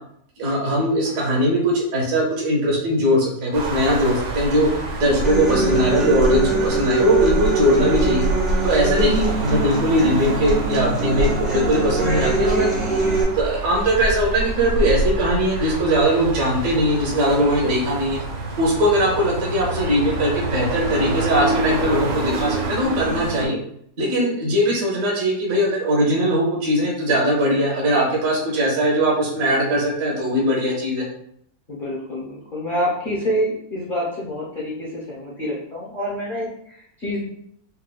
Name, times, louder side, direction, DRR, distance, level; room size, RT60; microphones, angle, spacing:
voice 1, 0.4-4.7 5.0-8.3 8.6-12.7 13.3-18.2 18.6-23.6 24.0-31.0, equal, 60° right, -3 dB, 1.1 m, -20 dB
sound 1, 3.5-23.5, right 2 dB, 80° right, 1.6 m, -26 dB
Human voice / Acoustic guitar, 5.2-13.2, right 3 dB, ahead, 0.4 m, -23 dB
voice 2, 8.8-9.4 17.3-17.8 24.0-24.2 31.7-37.2, equal, 40° left, -6 dB, 0.8 m, -27 dB
4.4 x 2.3 x 2.2 m, 0.68 s
omnidirectional pair, 1.9 m